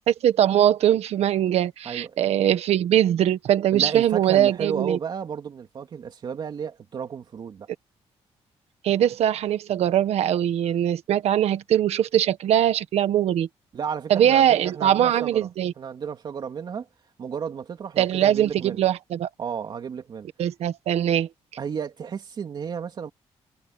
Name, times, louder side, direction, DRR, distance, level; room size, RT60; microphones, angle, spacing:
voice 1, 0.1-5.0 8.8-13.5 14.1-15.7 18.0-19.3 20.4-21.3, right 11 dB, 80° right, 1.5 m, -21 dB
voice 2, 1.8-2.2 3.7-7.7 13.7-15.5 15.8-16.9 17.2-18.8 19.4-20.3 21.6-23.1, right 7 dB, 45° right, 3.1 m, -33 dB
wide cardioid pair, 170°, 11 cm